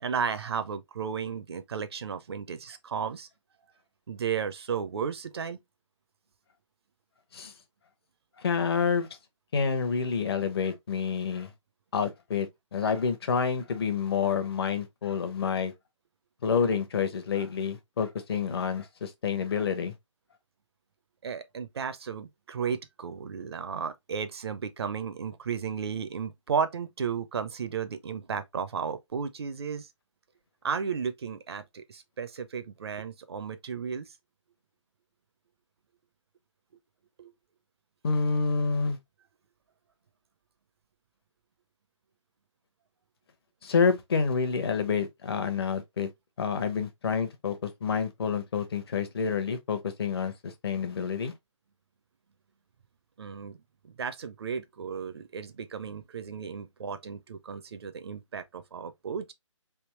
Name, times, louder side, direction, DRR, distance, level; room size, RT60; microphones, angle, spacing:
voice 1, 0.0-3.3 4.1-5.6 21.2-29.9 30.6-34.1 37.2-37.3 53.2-53.6 53.8-59.3, right 6 dB, 50° right, 0.6 m, -34 dB
voice 2, 8.4-9.1 9.5-11.5 11.9-15.7 16.4-19.9 38.0-39.0 43.6-46.1 46.4-51.3, left 6 dB, 50° left, 0.8 m, -28 dB
3.5 x 2.8 x 3.1 m
figure-of-eight pair, 150°, 17 cm